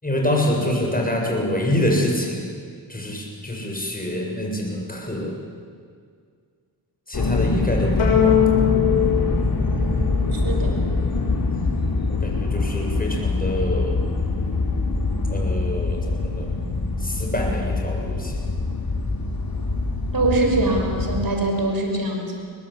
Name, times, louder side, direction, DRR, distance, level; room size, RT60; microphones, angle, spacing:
voice 1, 0.0-2.4 2.9-5.4 7.1-8.5 12.1-14.0 15.3-16.5 17.0-18.4, left 1 dB, 20° left, 0 dB, 7.3 m, -26 dB
sound 1, 7.1-21.3, left 3 dB, 50° left, 3.7 m, -24 dB
sound 2, 8.0-10.6, left 10 dB, 90° left, 6.3 m, -21 dB
voice 2, 10.3-10.8 20.1-22.4, right 2 dB, 45° right, 2 dB, 6.1 m, -23 dB
23.5 x 19.5 x 8.6 m, 2.1 s
cardioid pair, 55°, 47 cm